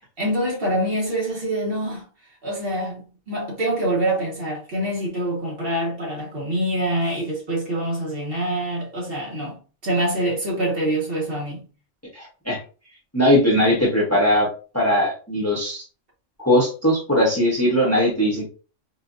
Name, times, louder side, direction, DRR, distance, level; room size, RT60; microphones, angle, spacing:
voice 1, 0.2-2.1 2.4-11.7, right 1 dB, 50° right, 1.4 m, -25 dB
voice 2, 12.1-12.6 13.1-14.5 14.7-15.8 16.4-18.5, equal, 15° left, 0.9 m, -19 dB
4.3 x 2.3 x 2.5 m
omnidirectional pair, 1.3 m